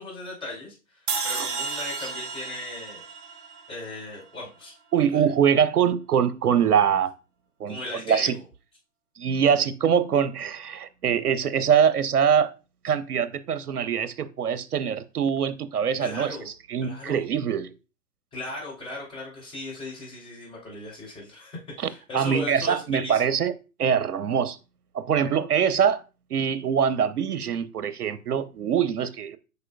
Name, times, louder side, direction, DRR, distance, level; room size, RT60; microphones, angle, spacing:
voice 1, 0.0-3.0 3.7-4.7 5.1-5.2 7.7-8.4 16.0-16.5 16.8-17.2 18.3-23.4, left 2 dB, 10° left, 3.2 m, -37 dB
sound 1, 1.1-4.3, right 5 dB, 50° right, 1.1 m, -32 dB
voice 2, 4.9-7.1 7.6-8.3 9.2-12.5 12.8-17.7 21.8-21.9 22.1-24.6 24.9-26.0 26.3-29.4, right 8 dB, 75° right, 0.8 m, -23 dB
8.1 x 5.4 x 2.3 m
figure-of-eight pair, 125°, 46 cm